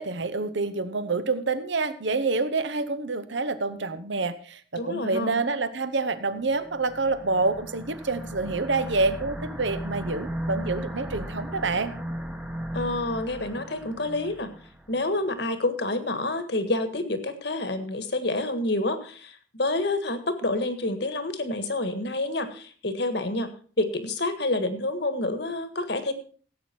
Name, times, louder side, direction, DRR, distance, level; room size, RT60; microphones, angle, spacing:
voice 1, 0.0-11.9, right 3 dB, 65° right, 12 dB, 1.0 m, -27 dB
voice 2, 4.8-5.4 12.7-14.5 14.9-26.1, left 2 dB, 55° left, 9 dB, 1.6 m, -28 dB
sound 1, 6.4-15.0, equal, 5° right, 1.1 m, -36 dB
16.5 x 8.6 x 4.5 m, 0.42 s
head